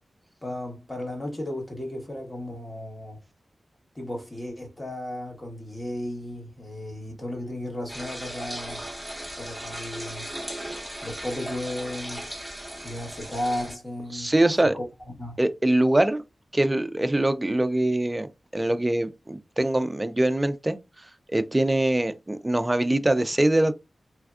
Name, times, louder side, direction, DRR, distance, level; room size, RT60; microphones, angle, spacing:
voice 1, 0.4-3.2 3.9-8.8 9.4-10.3 11.0-12.3 12.8-14.3 14.7-14.8 15.2-15.4, left 1 dB, 30° left, 1.2 m, -34 dB
sound 1, 7.9-13.7, right 1 dB, ahead, 0.9 m, -37 dB
voice 2, 14.1-14.7 15.4-16.2 16.5-20.8 21.3-23.7, right 1 dB, 20° right, 0.3 m, -23 dB
3.3 x 2.2 x 2.4 m
wide cardioid pair, 75°, 0 cm